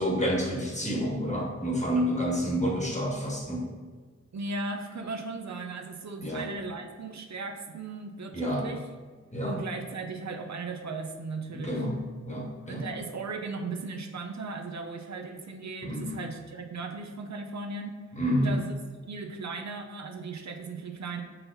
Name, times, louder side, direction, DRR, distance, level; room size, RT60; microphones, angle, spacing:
voice 1, 0.0-3.7 6.2-6.4 8.3-8.7 9.3-9.5 11.5-12.0 12.3-12.8 15.8-16.1 18.2-18.5, equal, 25° left, -2 dB, 1.3 m, -29 dB
voice 2, 4.3-8.9 9.4-11.8 12.7-18.0 18.4-18.7 19.1-21.2, right 3 dB, 70° right, 4 dB, 0.6 m, -37 dB
5.7 x 4.1 x 4.0 m, 1.5 s
wide cardioid pair, 85°, 29 cm